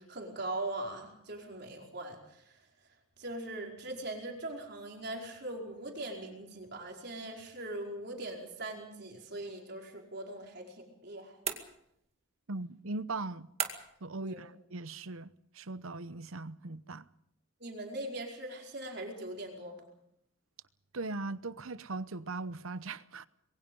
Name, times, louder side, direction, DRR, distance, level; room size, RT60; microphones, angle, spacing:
voice 1, 0.0-2.6 3.2-11.4 14.2-14.5 17.6-19.8, right 1 dB, 50° right, 4.9 m, -41 dB
sound 1, 11.4-12.2 13.6-14.1, right 7 dB, 30° right, 2.2 m, -37 dB
voice 2, 12.5-13.5 14.0-17.1 20.9-23.3, right 3 dB, 75° right, 0.9 m, -39 dB
26.0 x 22.5 x 5.5 m
head